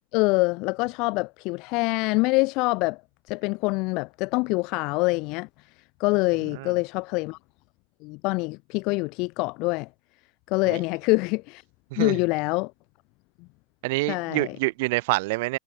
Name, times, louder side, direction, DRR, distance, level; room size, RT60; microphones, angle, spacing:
voice 1, 0.1-3.0 3.3-7.4 8.0-9.9 10.5-11.6 12.0-12.7 14.1-14.6, left 26 dB, 40° left, 2.2 m, -25 dB
voice 2, 13.8-15.6, right 24 dB, 50° right, 1.0 m, -26 dB
figure-of-eight pair, 90°, 0 cm